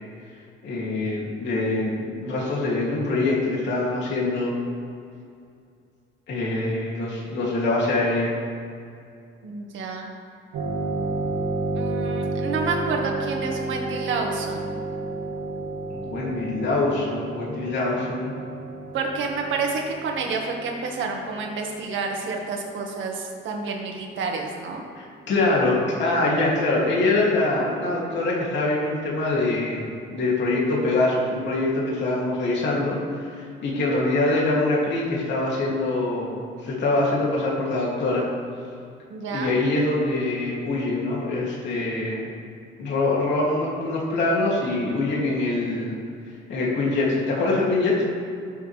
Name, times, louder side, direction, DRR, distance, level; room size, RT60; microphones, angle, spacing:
voice 1, 0.6-4.5 6.3-8.3 15.9-18.3 25.0-38.3 39.3-42.3 42.8-46.0 46.5-48.0, left 2 dB, 60° left, -4 dB, 3.0 m, -24 dB
voice 2, 9.4-10.1 11.7-14.8 18.9-24.8 39.1-39.5, right 4 dB, 65° right, 1 dB, 1.9 m, -29 dB
sound 1, 10.5-23.7, right 2 dB, 90° right, 2.1 m, -32 dB
18.0 x 7.7 x 3.5 m, 2.4 s
cardioid pair, 160°, 21 cm